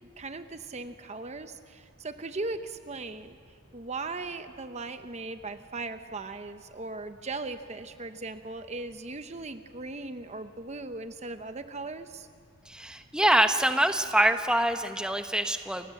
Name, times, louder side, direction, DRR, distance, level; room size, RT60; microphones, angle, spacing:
voice 1, 0.2-3.4 3.7-12.3, right 3 dB, 30° right, 9 dB, 0.8 m, -38 dB
voice 2, 12.7-15.9, right 1 dB, 5° right, 7 dB, 1.0 m, -25 dB
30.0 x 25.0 x 7.7 m, 2.4 s
head